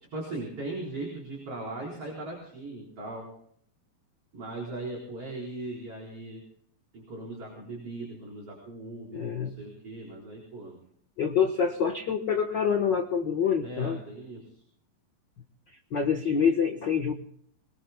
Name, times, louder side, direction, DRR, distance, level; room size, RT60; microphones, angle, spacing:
voice 1, 0.1-3.3 4.3-6.4 6.9-10.8 13.6-14.6, right 2 dB, 40° right, -3 dB, 5.3 m, -39 dB
voice 2, 9.1-9.6 11.2-14.0 15.9-17.1, left 7 dB, 85° left, 4 dB, 0.9 m, -26 dB
25.5 x 22.0 x 2.2 m, 0.64 s
omnidirectional pair, 4.0 m